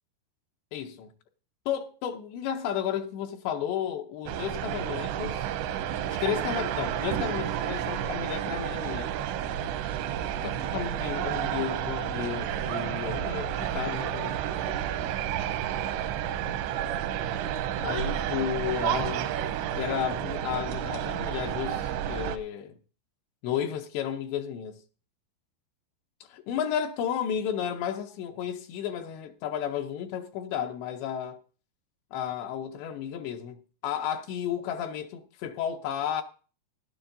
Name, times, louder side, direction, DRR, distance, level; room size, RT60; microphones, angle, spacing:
voice 1, 0.7-1.1 1.7-5.5 6.2-9.1 10.4-14.4 17.8-19.3 19.8-22.7 23.4-24.8 26.3-31.4 32.1-36.2, left 9 dB, 80° left, 2.9 m, -33 dB
sound 1, 4.3-22.4, right 10 dB, 85° right, 2.9 m, -31 dB
16.5 x 11.5 x 2.6 m
omnidirectional pair, 5.0 m